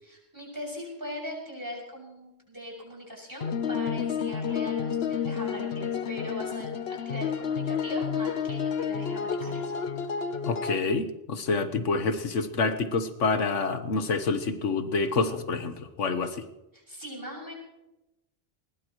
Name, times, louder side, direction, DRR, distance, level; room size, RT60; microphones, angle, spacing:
voice 1, 0.0-9.7 16.7-17.5, equal, 15° right, -4 dB, 6.8 m, -40 dB
sound 1, 3.4-10.8, left 7 dB, 60° left, 1.1 m, -30 dB
voice 2, 10.5-16.4, left 4 dB, 85° left, 9 dB, 1.6 m, -27 dB
20.5 x 20.5 x 3.1 m, 0.95 s
omnidirectional pair, 1.2 m